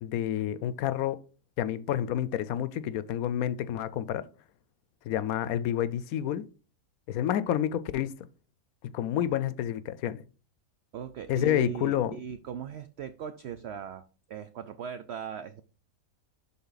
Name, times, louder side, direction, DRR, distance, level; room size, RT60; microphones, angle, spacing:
voice 1, 0.0-1.2 1.6-4.2 5.0-6.5 7.1-8.1 8.9-10.2 11.3-12.1, left 11 dB, 80° left, 1.0 m, -29 dB
voice 2, 10.9-15.6, right 8 dB, 65° right, 0.7 m, -39 dB
11.5 x 3.8 x 3.9 m
omnidirectional pair, 1.5 m